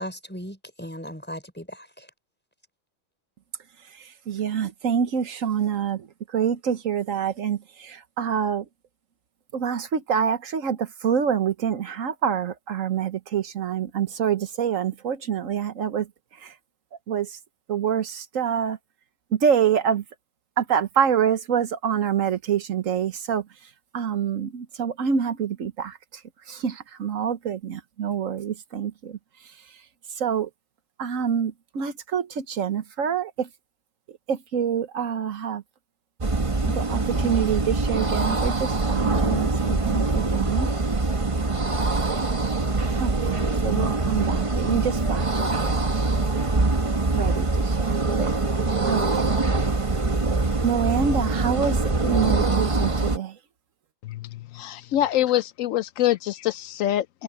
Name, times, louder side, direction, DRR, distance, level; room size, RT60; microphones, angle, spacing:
voice 1, 0.0-2.1, equal, 10° left, 5.7 m, -37 dB
voice 2, 3.9-8.6 9.5-16.1 16.4-16.5 17.1-17.4 17.7-18.8 19.3-20.0 20.6-23.5 23.9-26.2 26.5-29.2 30.1-30.5 31.0-33.5 34.3-35.6 36.7-40.7 43.0-43.4 43.6-45.7 47.1-48.4 48.9-49.2 50.6-53.4, right 7 dB, 80° right, 1.4 m, -26 dB
sound 1, 36.2-53.2, right 3 dB, 25° right, 1.2 m, -24 dB
voice 3, 54.5-57.2, left 13 dB, 80° left, 1.0 m, -25 dB
omnidirectional pair, 1.3 m